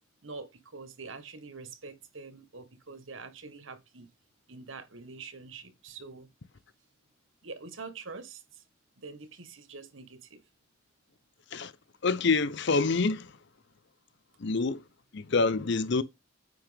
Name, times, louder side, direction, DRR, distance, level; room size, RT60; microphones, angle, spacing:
voice 1, 0.2-4.1 4.5-6.3 7.4-8.6 9.0-10.4, right 4 dB, 70° right, 1.5 m, -45 dB
voice 2, 12.0-13.4 14.4-14.8 15.1-16.0, left 4 dB, 60° left, 0.6 m, -26 dB
9.0 x 5.9 x 3.4 m
head